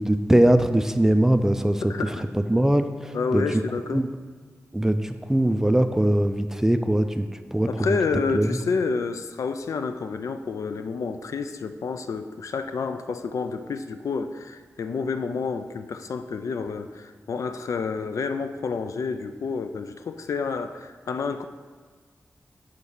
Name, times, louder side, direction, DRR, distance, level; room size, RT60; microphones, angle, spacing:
voice 1, 0.0-1.9 2.3-3.6 3.9-4.1 4.7-7.9 8.3-8.5, right 1 dB, 10° right, 9 dB, 0.3 m, -21 dB
voice 2, 1.9-2.2 3.1-4.1 7.7-21.4, left 4 dB, 80° left, 9 dB, 0.4 m, -29 dB
6.5 x 4.5 x 5.5 m, 1.5 s
wide cardioid pair, 150°, 5 cm